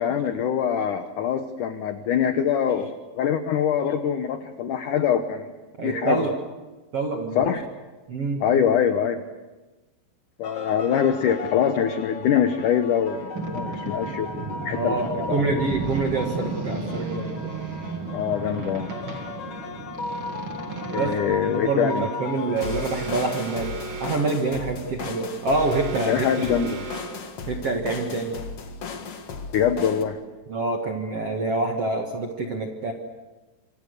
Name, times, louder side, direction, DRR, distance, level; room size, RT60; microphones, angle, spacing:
voice 1, 0.0-5.5 5.8-6.2 7.4-7.7 8.4-9.2 10.4-14.3 14.7-15.6 18.1-18.9 20.9-22.1 26.1-26.9 29.5-30.2, left 8 dB, 85° left, 8 dB, 1.8 m, -24 dB
voice 2, 5.8-6.3 6.9-7.5 8.1-8.4 14.7-17.5 20.9-23.7 24.0-26.5 27.5-28.3 30.5-32.9, right 3 dB, 50° right, 2 dB, 1.8 m, -26 dB
sound 1, 10.4-30.0, left 4 dB, 55° left, 1.7 m, -36 dB
Boat Water vehicle, 13.3-21.2, right 3 dB, 35° right, 2.5 m, -33 dB
Alarm, 22.6-24.3 25.5-27.3, right 3 dB, 70° right, 6.4 m, -36 dB
26.5 x 25.5 x 6.6 m, 1.2 s
omnidirectional pair, 5.2 m